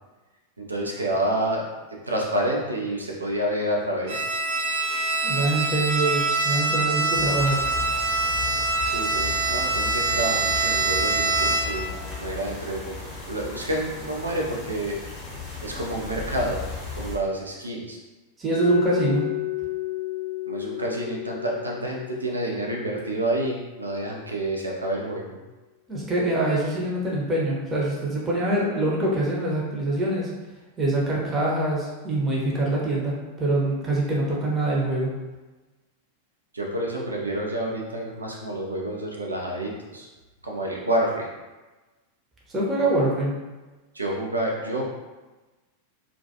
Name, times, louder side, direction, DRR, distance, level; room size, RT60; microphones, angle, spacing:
voice 1, 0.6-1.7 2.0-4.2 8.8-13.0 13.3-15.0 15.6-16.6 17.0-18.0 20.4-25.4 36.5-40.1 40.4-41.3 43.9-44.9, right 1 dB, 80° right, -2 dB, 0.5 m, -28 dB
Bowed string instrument, 4.1-11.9, right 3 dB, 55° right, 0.9 m, -24 dB
voice 2, 5.2-7.6 18.4-19.2 25.9-30.3 30.8-35.1 42.5-43.3, right 2 dB, 20° right, -4 dB, 0.7 m, -24 dB
sound 1, 7.1-17.2, left 5 dB, 40° left, 0.8 m, -36 dB
Mallet percussion, 18.5-24.4, left 16 dB, 75° left, 0.6 m, -33 dB
2.2 x 2.2 x 2.7 m, 1.2 s
figure-of-eight pair, 90°, 0 cm